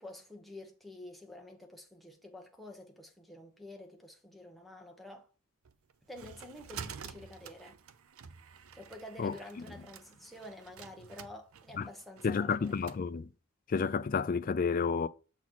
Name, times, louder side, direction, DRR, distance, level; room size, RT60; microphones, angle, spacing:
voice 1, 0.0-5.3 6.1-7.8 8.7-12.7, left 1 dB, ahead, 1.0 m, -49 dB
sound 1, 5.7-13.0, right 7 dB, 75° right, 0.5 m, -49 dB
voice 2, 12.2-13.3 13.7-15.1, left 5 dB, 40° left, 0.3 m, -30 dB
7.1 x 4.1 x 4.4 m
head